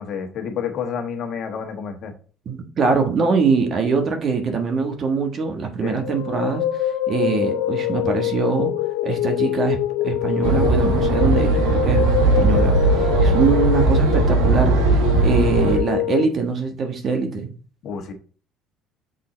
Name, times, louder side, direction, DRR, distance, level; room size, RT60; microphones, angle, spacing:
voice 1, 0.0-2.1 5.8-6.0 17.8-18.1, left 7 dB, 55° left, 1.3 m, -29 dB
voice 2, 2.4-8.7 9.0-9.8 10.0-14.8 15.2-17.5, right 5 dB, 40° right, 1.3 m, -23 dB
sound 1, 6.0-16.2, left 13 dB, 90° left, 0.3 m, -24 dB
sound 2, 10.4-15.8, right 3 dB, 85° right, 1.1 m, -18 dB
6.6 x 3.9 x 3.9 m
cardioid pair, 110°, 0 cm